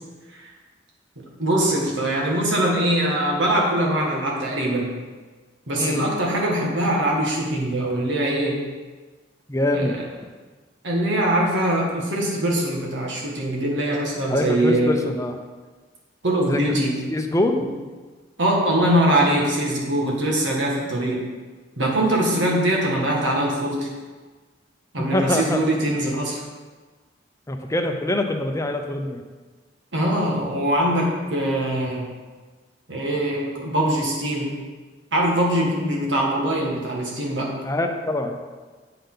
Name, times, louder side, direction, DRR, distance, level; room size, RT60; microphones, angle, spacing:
voice 1, 1.4-4.9 5.7-8.6 9.7-9.8 10.8-14.9 16.2-17.0 17.6-17.7 18.4-21.2 21.8-23.9 24.9-26.4 29.9-32.0 32.9-34.5 35.1-37.5, right 1 dB, 75° right, -2 dB, 1.8 m, -22 dB
voice 2, 5.8-6.1 9.5-10.0 14.3-15.4 16.5-16.8 17.1-17.6 25.0-25.6 27.5-29.2 37.6-38.4, left 1 dB, 15° left, 4 dB, 0.7 m, -24 dB
8.5 x 6.7 x 4.0 m, 1.4 s
head